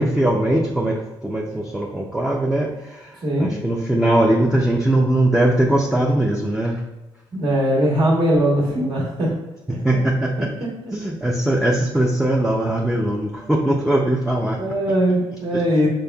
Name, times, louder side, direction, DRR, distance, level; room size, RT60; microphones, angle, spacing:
voice 1, 0.0-3.1 3.4-6.8 9.8-10.5 10.9-14.6, right 1 dB, 5° right, -2 dB, 0.5 m, -20 dB
voice 2, 7.3-9.3 9.7-9.8 10.4-10.7 13.3-13.5 14.6-15.9, equal, 55° right, -5 dB, 1.3 m, -20 dB
5.3 x 4.1 x 2.3 m, 1.0 s
cardioid pair, 85°, 11 cm